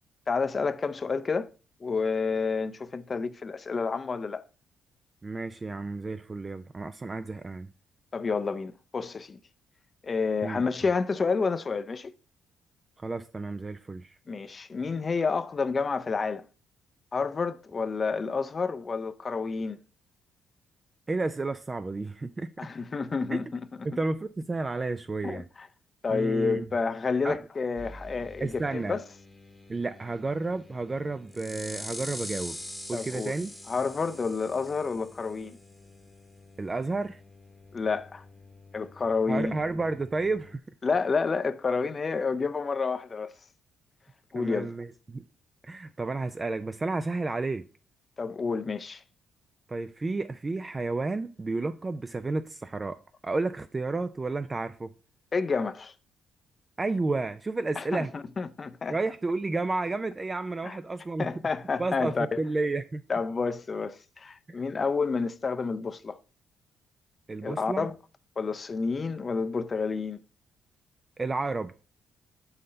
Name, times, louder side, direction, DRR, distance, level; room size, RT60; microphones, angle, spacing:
voice 1, 0.3-1.5 1.8-4.4 8.1-9.4 10.0-12.1 14.3-16.5 17.1-19.8 22.6-23.9 25.2-25.7 26.0-29.0 32.9-33.3 33.7-35.6 37.7-38.2 38.7-39.6 40.8-43.3 44.3-44.7 48.2-49.0 55.3-55.9 57.8-58.9 60.6-60.8 61.2-62.4 63.1-66.2 67.4-67.9 68.4-70.2, left 4 dB, 35° left, 0.5 m, -29 dB
voice 2, 5.2-7.7 10.4-10.6 13.0-14.1 21.1-22.5 23.3-23.4 23.9-25.4 26.1-26.6 27.2-27.4 28.4-28.9 29.7-32.6 32.9-33.5 36.6-37.2 39.3-40.6 44.3-45.2 45.6-47.7 49.7-53.0 53.2-54.9 56.8-58.1 58.9-61.3 61.8-63.0 64.5-64.6 67.3-67.9 71.2-71.7, right 3 dB, 25° right, 0.3 m, -31 dB
sound 1, 27.8-40.6, left 1 dB, 5° left, 1.0 m, -45 dB
6.5 x 5.7 x 3.9 m
cardioid pair, 90°, 0 cm